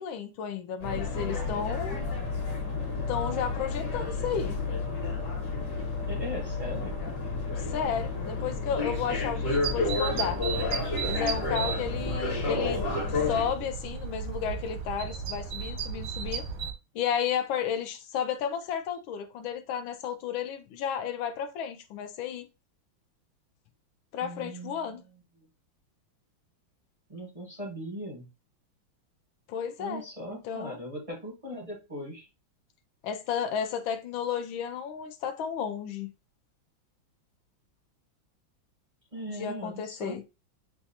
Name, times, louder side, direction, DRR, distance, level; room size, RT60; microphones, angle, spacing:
voice 1, 0.0-2.0 3.1-4.5 7.7-10.4 11.1-16.4 16.9-22.5 24.1-25.0 29.5-30.0 30.3-30.8 33.0-36.1 39.3-40.2, left 8 dB, 80° left, 1.3 m, -33 dB
sound 1, 0.8-13.5, left 3 dB, 55° left, 1.7 m, -31 dB
voice 2, 6.1-7.0 24.2-25.0 27.1-28.3 29.8-32.3 39.1-40.2, equal, 35° right, 0.5 m, -39 dB
sound 2, 9.5-16.7, right 7 dB, 90° right, 1.6 m, -35 dB
6.9 x 2.3 x 2.7 m
omnidirectional pair, 2.2 m